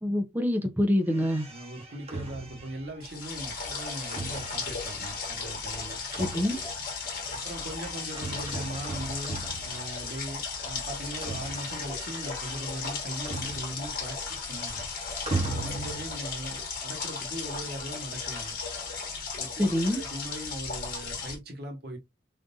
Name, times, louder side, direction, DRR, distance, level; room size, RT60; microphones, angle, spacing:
voice 1, 0.0-1.5 6.2-6.6 19.6-20.0, left 1 dB, 10° right, 0.4 m, -26 dB
sound 1, 1.1-10.4 10.6-14.1 14.3-16.2, right 3 dB, 30° right, 0.8 m, -40 dB
voice 2, 1.5-6.0 7.4-9.4 9.6-14.9 15.4-18.6 19.4-22.0, right 1 dB, 55° right, 1.1 m, -39 dB
sound 2, 3.0-21.4, left 5 dB, 45° left, 1.1 m, -36 dB
3.6 x 2.5 x 2.5 m
head